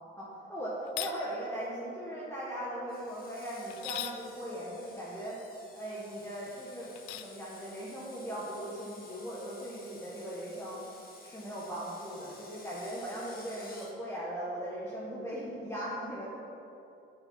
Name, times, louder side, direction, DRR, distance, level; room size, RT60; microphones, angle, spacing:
voice 1, 0.2-5.4 5.7-10.8 11.2-16.3, right 1 dB, 10° left, -8 dB, 1.5 m, -39 dB
sound 1, 0.9-1.2 3.7-4.2 7.0-7.3, left 13 dB, 70° left, 0.4 m, -38 dB
Screech, 2.9-13.9, left 3 dB, 30° left, 1.5 m, -54 dB
6.7 x 5.6 x 4.1 m, 2.8 s
hypercardioid pair, 55°, 31 cm